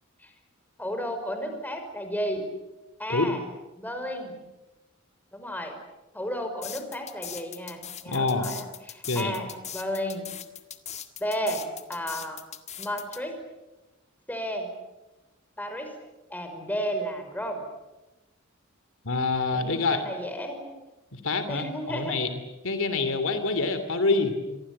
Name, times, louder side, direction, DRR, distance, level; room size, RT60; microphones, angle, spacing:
voice 1, 0.8-2.5 3.0-3.4 3.8-4.4 5.3-5.7 6.1-10.3 11.2-12.4 12.8-13.3 14.3-14.7 15.6-15.9 16.3-17.6 19.5-20.7 21.5-22.2, equal, 10° left, 5 dB, 5.5 m, -33 dB
sound 1, 6.6-13.2, left 9 dB, 35° left, 1.9 m, -39 dB
voice 2, 8.1-8.5 9.1-9.3 19.0-20.0 21.1-22.3 22.6-24.6, left 3 dB, 70° left, 10 dB, 2.8 m, -26 dB
28.0 x 23.5 x 8.6 m, 1.1 s
head